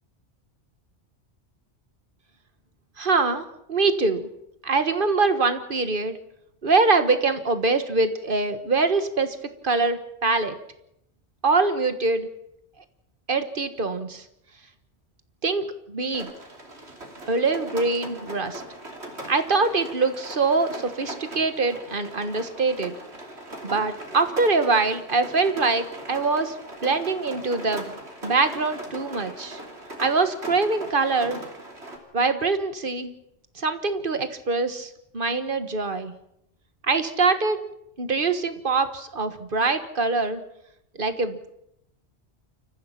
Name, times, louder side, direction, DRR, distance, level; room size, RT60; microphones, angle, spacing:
voice 1, 3.0-4.3 4.6-6.2 6.6-9.4 9.6-10.6 11.4-12.3 13.3-14.2 15.4-16.3 17.3-18.6 19.3-23.0 23.6-26.5 26.8-29.6 30.0-31.4 32.1-33.1 33.5-36.1 36.8-37.6 38.0-40.4 41.0-41.5, right 3 dB, 50° right, 10 dB, 1.6 m, -24 dB
Rain, 16.1-32.0, right 1 dB, 75° right, 3.4 m, -39 dB
29.0 x 15.0 x 5.9 m, 0.81 s
omnidirectional pair, 1.1 m